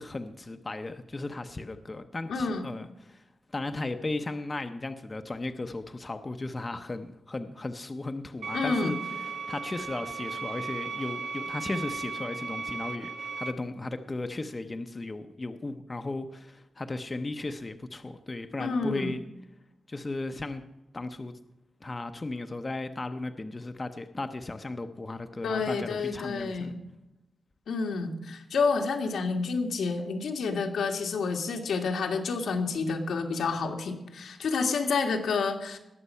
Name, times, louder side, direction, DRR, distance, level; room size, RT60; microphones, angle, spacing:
voice 1, 0.0-3.2 3.5-19.2 19.9-20.6 20.9-21.4 21.8-26.7, left 2 dB, 20° left, 8 dB, 0.7 m, -36 dB
voice 2, 2.3-2.6 8.5-9.0 18.6-19.1 25.4-26.8 27.7-35.8, left 4 dB, 90° left, 3 dB, 1.9 m, -29 dB
sound 1, 8.4-13.5, right 4 dB, 60° right, 0.9 m, -36 dB
19.5 x 7.4 x 5.5 m, 0.91 s
wide cardioid pair, 165°, 0 cm